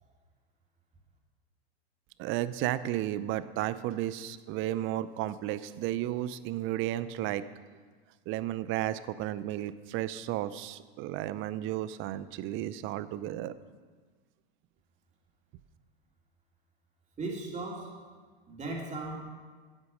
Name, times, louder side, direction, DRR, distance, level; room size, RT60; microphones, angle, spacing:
voice 1, 2.2-7.5 8.3-13.5, right 13 dB, 40° right, 15 dB, 0.6 m, -33 dB
voice 2, 17.2-17.9 18.5-19.2, right 2 dB, 20° right, -1 dB, 2.8 m, -37 dB
11.0 x 8.2 x 6.4 m, 1.5 s
hypercardioid pair, 115°, 32 cm